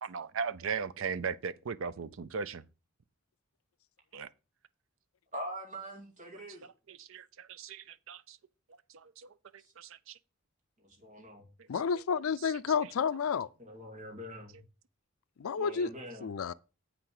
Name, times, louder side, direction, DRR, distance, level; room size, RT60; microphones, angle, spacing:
voice 1, 0.0-2.6 4.1-4.3 6.9-8.4 9.0-9.3 9.8-10.2 12.4-12.5, right 6 dB, 65° right, 0.6 m, -38 dB
voice 2, 5.3-6.7 9.6-9.7 10.8-11.5 13.6-14.6 15.6-16.3, equal, 35° right, 2.5 m, -44 dB
voice 3, 11.7-13.5 15.4-15.9 16.2-16.5, left 6 dB, 85° left, 0.4 m, -30 dB
8.2 x 6.0 x 4.9 m
head